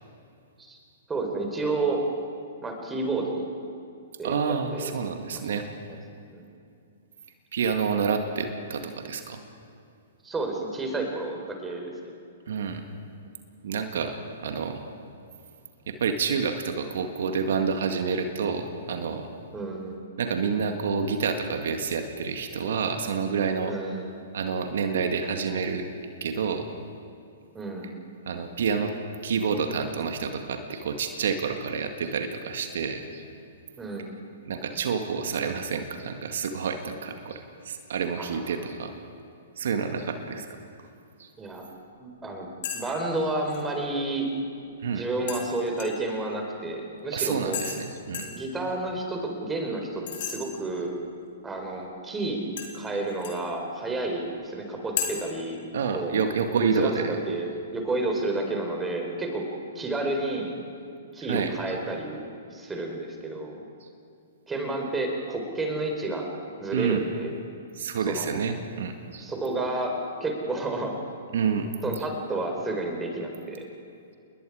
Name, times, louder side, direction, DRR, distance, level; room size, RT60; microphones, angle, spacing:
voice 1, 1.1-2.0 2.6-3.5 4.2-4.9 5.3-5.4 6.4-6.5 10.2-11.9 19.5-20.0 23.7-24.2 27.5-28.0 33.8-34.2 38.2-38.5 41.4-41.6 42.0-44.3 44.9-47.6 48.3-50.9 51.4-52.4 52.7-55.6 55.9-56.1 56.7-59.4 59.7-60.5 61.1-62.2 62.5-63.6 64.5-66.3 66.6-67.4 68.0-68.3 69.2-69.9 70.2-70.9 71.8-73.6, right 2 dB, 15° right, 2 dB, 4.6 m, -30 dB
voice 2, 4.2-5.7 7.5-9.4 12.5-12.8 13.6-14.2 14.4-14.8 15.9-19.3 20.2-23.8 24.3-25.9 26.2-26.7 28.3-28.9 29.2-33.2 34.5-38.9 39.6-40.5 41.2-41.3 44.8-45.0 47.1-48.3 55.7-57.1 61.3-61.5 66.7-67.0 67.8-69.2 71.3-71.7, right 6 dB, 60° right, 6 dB, 2.0 m, -28 dB
sound 1, 42.6-42.8 43.1-43.6 45.3-46.1 47.5-47.8 48.1-48.4 50.1-50.4 52.6-53.4 55.0-55.1, left 9 dB, 50° left, 3.5 m, -33 dB
28.5 x 21.5 x 5.0 m, 2.5 s
figure-of-eight pair, 115°, 0 cm